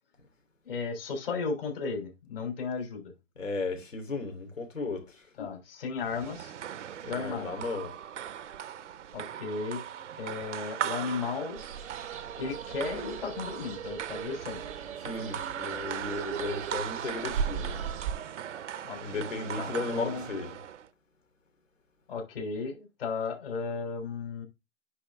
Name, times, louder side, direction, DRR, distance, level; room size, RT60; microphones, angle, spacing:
voice 1, 0.6-3.1 5.4-6.5 7.0-7.6 9.1-9.8 10.2-11.6 12.4-14.6 18.8-19.3 19.6-20.2 22.1-24.4, left 4 dB, 45° left, 3.3 m, -35 dB
voice 2, 3.4-5.3 7.1-7.9 15.0-17.8 19.0-20.6, left 3 dB, 80° left, 3.2 m, -35 dB
sound 1, 6.0-20.9, right 9 dB, 70° right, 0.6 m, -38 dB
sound 2, 11.6-18.1, right 6 dB, 10° right, 0.7 m, -39 dB
9.7 x 4.2 x 3.5 m
hypercardioid pair, 165°, 38 cm